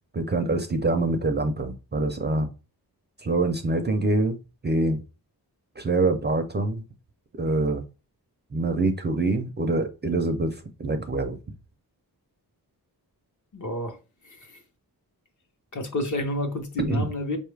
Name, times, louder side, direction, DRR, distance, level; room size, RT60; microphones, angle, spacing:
voice 1, 0.1-2.5 3.2-4.4 4.6-5.0 5.8-6.8 7.3-7.8 8.5-11.4 16.8-17.1, right 2 dB, 30° right, 0.4 m, -25 dB
voice 2, 13.5-14.0 14.3-14.6 15.7-17.4, left 1 dB, 50° left, 0.8 m, -30 dB
5.0 x 2.4 x 3.2 m
wide cardioid pair, 170°, 37 cm